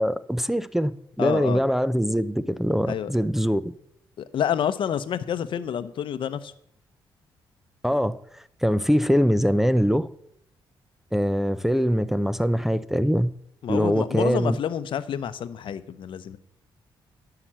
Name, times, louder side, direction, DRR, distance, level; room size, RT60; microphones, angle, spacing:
voice 1, 0.0-3.7 7.8-10.1 11.1-13.3 13.7-14.6, equal, 5° right, 0.5 m, -23 dB
voice 2, 1.2-1.6 2.9-3.1 4.2-6.5 13.6-16.4, left 9 dB, 65° left, 0.7 m, -28 dB
11.0 x 5.8 x 7.4 m
cardioid pair, 80°, 9 cm